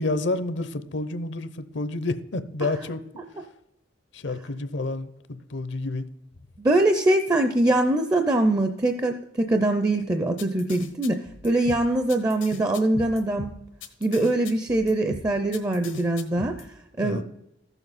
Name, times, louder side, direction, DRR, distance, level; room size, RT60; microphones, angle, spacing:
voice 1, 0.0-3.0 4.1-6.1 17.0-17.2, left 2 dB, 65° left, 0.7 m, -29 dB
voice 2, 6.6-13.5 14.0-16.5 17.0-17.2, right 2 dB, 20° right, 0.5 m, -23 dB
sound 1, 10.4-16.6, left 3 dB, 85° left, 1.1 m, -38 dB
14.0 x 7.1 x 4.1 m
head